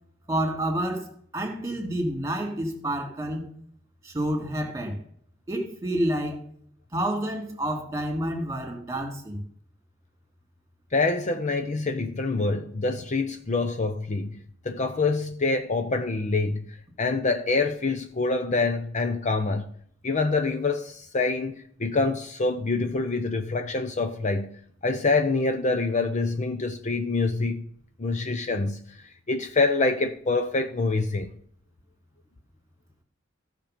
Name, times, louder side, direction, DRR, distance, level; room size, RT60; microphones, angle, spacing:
voice 1, 0.3-3.5 4.0-5.0 5.5-6.4 6.9-9.4, right 1 dB, 15° right, 2.6 m, -29 dB
voice 2, 10.9-16.7 17.0-19.7 20.0-24.6 24.8-27.6 28.0-28.8 29.3-31.3, left 3 dB, 40° left, 0.7 m, -26 dB
15.0 x 6.1 x 5.1 m
head